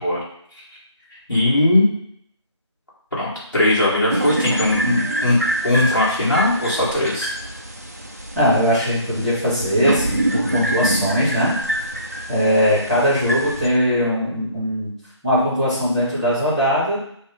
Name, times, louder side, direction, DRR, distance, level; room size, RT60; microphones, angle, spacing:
voice 1, 1.3-1.9 3.2-5.4 5.6-7.3, left 1 dB, 45° left, -8 dB, 2.5 m, -19 dB
sound 1, 4.1-13.7, right 1 dB, 35° right, 0.5 m, -25 dB
voice 2, 8.3-11.5 12.3-14.9 15.2-17.0, equal, ahead, -14 dB, 1.6 m, -20 dB
7.0 x 2.6 x 5.2 m, 0.68 s
figure-of-eight pair, 170°, 15 cm